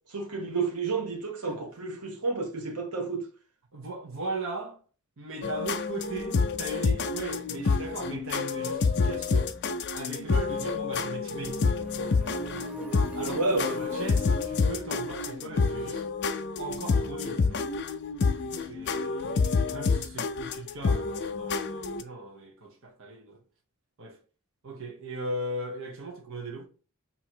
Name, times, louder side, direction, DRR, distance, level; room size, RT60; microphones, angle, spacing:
voice 1, 0.1-3.2 13.3-13.9, right 3 dB, 90° right, 1.0 m, -30 dB
voice 2, 3.7-4.8 5.2-9.6 9.9-11.6 13.1-16.0 16.6-17.6 18.4-23.4 24.0-24.2 24.6-26.7, right 2 dB, 60° right, 0.9 m, -38 dB
sound 1, 5.4-22.0, left 4 dB, 50° left, 0.4 m, -28 dB
sound 2, 11.3-17.1, equal, 5° right, 0.5 m, -42 dB
3.0 x 2.7 x 4.3 m
head